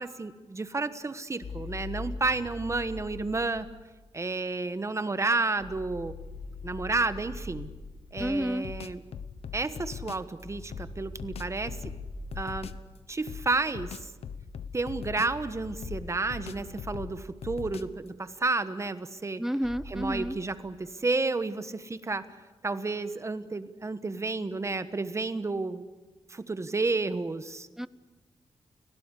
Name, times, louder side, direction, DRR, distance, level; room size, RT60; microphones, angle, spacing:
voice 1, 0.0-3.7 4.1-6.1 6.6-7.7 8.1-9.0 9.5-11.9 12.4-12.7 13.1-14.1 14.7-19.4 19.9-22.3 22.6-25.8 26.3-27.7, right 3 dB, 30° right, 12 dB, 1.2 m, -31 dB
sound 1, 1.4-3.7 5.6-8.1 10.4-13.0 15.2-17.8 19.6-20.3, left 2 dB, 60° left, 6.2 m, -42 dB
sound 2, 8.2-10.3 10.7-12.9 13.3-15.5 15.8-18.1, left 7 dB, 80° left, 1.0 m, -41 dB
voice 2, 8.2-8.7 19.4-20.4 27.8-27.9, equal, 5° right, 16 dB, 0.8 m, -30 dB
30.0 x 17.5 x 8.3 m, 1.2 s
wide cardioid pair, 110°, 10 cm